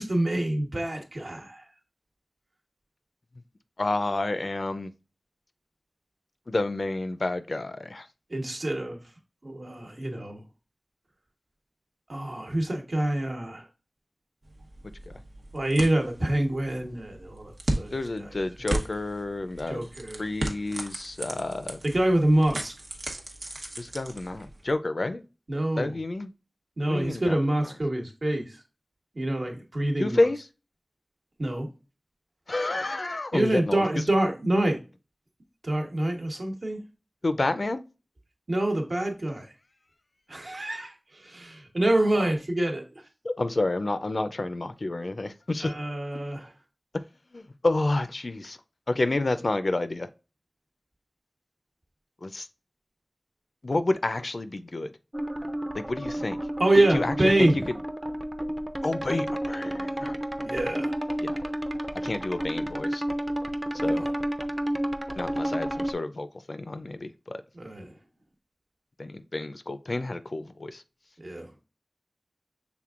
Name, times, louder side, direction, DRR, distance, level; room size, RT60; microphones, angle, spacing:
voice 1, 0.0-1.6 8.3-9.0 9.4-10.4 12.1-13.7 15.5-17.9 18.2-18.3 19.7-20.3 21.8-22.7 25.5-26.0 26.8-28.6 29.1-30.3 31.4-31.7 33.3-34.8 35.6-36.8 38.5-39.5 40.3-43.0 45.6-46.5 56.6-57.7 60.4-60.9 63.8-64.0 67.5-67.9 71.2-71.5, right 1 dB, 65° right, 1.1 m, -26 dB
voice 2, 3.8-4.9 6.5-8.1 17.9-19.9 20.2-21.8 23.8-25.2 25.8-26.3 26.9-27.7 30.0-30.4 32.5-34.0 37.2-37.8 43.2-45.8 47.3-48.6 48.9-50.1 52.2-52.5 53.6-54.9 55.8-56.4 56.9-57.5 58.8-60.2 61.2-61.4 62.0-63.0 63.7-64.0 65.2-67.4 69.0-70.8, left 2 dB, 65° left, 0.4 m, -29 dB
sound 1, 14.4-24.7, right 1 dB, 80° right, 0.8 m, -36 dB
sound 2, 55.1-65.9, right 1 dB, 20° right, 0.5 m, -31 dB
5.9 x 3.5 x 2.4 m
wide cardioid pair, 60°, 0 cm